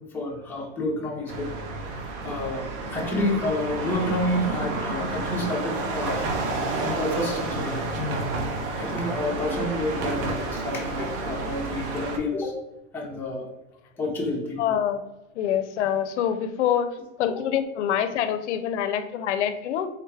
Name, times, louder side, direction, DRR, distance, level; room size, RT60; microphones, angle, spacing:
voice 1, 0.1-1.5 2.2-6.2 6.8-8.2 8.7-12.5 12.9-13.5 14.0-14.8, left 1 dB, 5° left, -4 dB, 0.6 m, -29 dB
sound 1, 1.3-12.2, right 2 dB, 50° right, 0.7 m, -30 dB
voice 2, 14.6-15.0 15.4-16.9 17.2-19.9, left 9 dB, 80° left, 10 dB, 0.5 m, -25 dB
3.6 x 2.3 x 3.2 m, 0.96 s
supercardioid pair, 145°, 35 cm